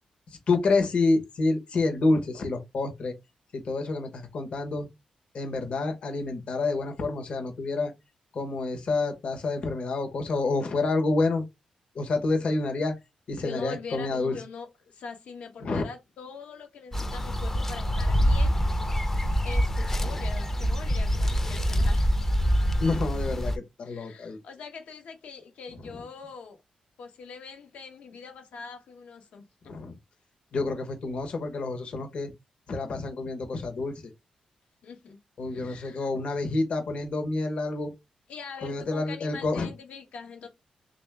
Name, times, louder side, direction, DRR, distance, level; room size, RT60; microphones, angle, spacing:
voice 1, 0.5-3.1 3.5-4.9 5.3-7.9 8.3-11.4 11.9-12.9 13.3-14.4 15.6-15.8 22.8-24.4 29.7-29.9 30.5-32.3 32.7-34.1 35.4-37.9 38.6-39.7, left 3 dB, 55° left, 1.0 m, -28 dB
voice 2, 13.4-18.6 19.4-22.2 23.8-26.6 27.0-29.5 34.8-35.2 35.5-36.1 38.3-40.5, left 5 dB, 80° left, 1.1 m, -43 dB
sound 1, 16.9-23.6, equal, 15° left, 0.5 m, -25 dB
3.3 x 2.6 x 3.4 m
wide cardioid pair, 125°, 2 cm